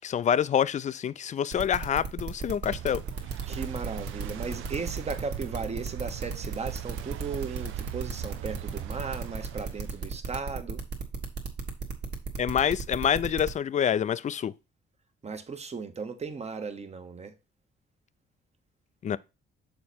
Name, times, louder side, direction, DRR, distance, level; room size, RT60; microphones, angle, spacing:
voice 1, 0.0-3.0 12.4-14.5 19.0-19.2, left 9 dB, 40° left, 0.4 m, -27 dB
sound 1, 1.5-13.5, right 4 dB, 60° right, 1.5 m, -35 dB
sound 2, 2.6-10.0, right 15 dB, 85° right, 0.5 m, -40 dB
voice 2, 3.5-10.8 15.2-17.3, right 4 dB, 35° right, 1.1 m, -36 dB
6.6 x 4.2 x 4.3 m
cardioid pair, 90°, 20 cm